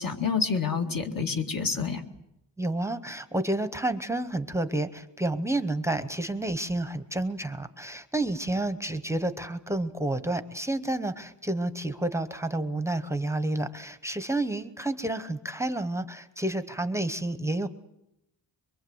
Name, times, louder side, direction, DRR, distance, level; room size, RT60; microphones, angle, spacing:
voice 1, 0.0-2.0, left 5 dB, 50° left, 4 dB, 2.1 m, -28 dB
voice 2, 2.6-17.7, right 2 dB, 5° right, 10 dB, 0.9 m, -30 dB
24.0 x 23.5 x 7.9 m, 0.84 s
wide cardioid pair, 180°, 42 cm